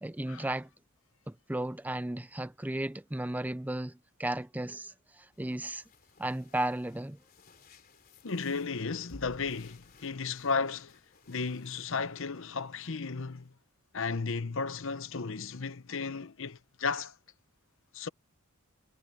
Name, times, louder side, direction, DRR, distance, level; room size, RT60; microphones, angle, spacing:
voice 1, 0.0-0.7 1.3-5.8 6.2-7.2, right 1 dB, 5° right, 0.4 m, -35 dB
sound 1, 5.3-13.5, left 2 dB, 40° left, 3.3 m, -58 dB
voice 2, 8.2-11.0 11.3-13.5 13.9-17.1 17.9-18.1, left 4 dB, 60° left, 0.9 m, -34 dB
head